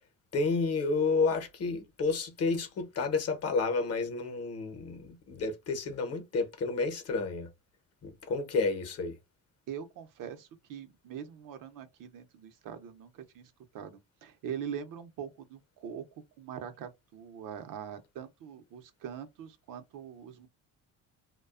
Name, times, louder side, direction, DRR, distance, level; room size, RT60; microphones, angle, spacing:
voice 1, 0.3-7.5 8.0-9.2, left 4 dB, 45° left, 0.8 m, -30 dB
voice 2, 9.7-16.0 16.4-20.5, right 8 dB, 65° right, 0.7 m, -43 dB
2.4 x 2.2 x 2.3 m
cardioid pair, 115°, 34 cm